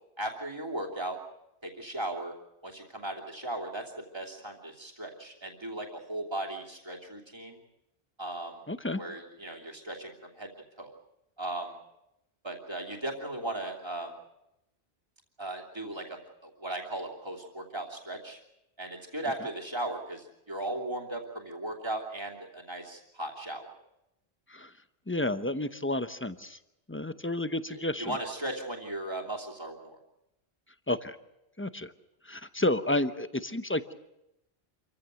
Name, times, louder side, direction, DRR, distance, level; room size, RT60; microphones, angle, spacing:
voice 1, 0.2-1.2 1.6-2.3 2.6-3.8 4.1-7.6 8.2-8.6 9.0-10.5 10.8-10.9 11.4-11.7 12.4-14.1 15.4-18.4 18.8-23.7 27.7-30.0, right 1 dB, 25° right, 0 dB, 3.0 m, -37 dB
voice 2, 8.7-9.0 24.5-24.7 25.1-26.6 26.9-28.2 30.9-31.2 31.6-31.9 32.3-33.9, left 1 dB, 15° left, 11 dB, 0.8 m, -31 dB
27.0 x 15.5 x 8.1 m, 0.87 s
omnidirectional pair, 1.0 m